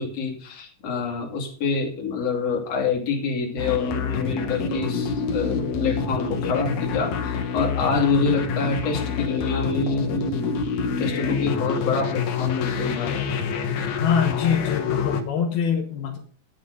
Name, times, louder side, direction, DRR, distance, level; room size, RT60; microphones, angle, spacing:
voice 1, 0.0-10.6 11.0-13.3, left 4 dB, 45° left, 0 dB, 3.6 m, -26 dB
sound 1, 3.6-15.2, left 5 dB, 60° left, 2.3 m, -27 dB
voice 2, 14.0-16.2, left 7 dB, 75° left, 3 dB, 3.1 m, -24 dB
12.5 x 9.3 x 5.4 m, 0.43 s
omnidirectional pair, 4.5 m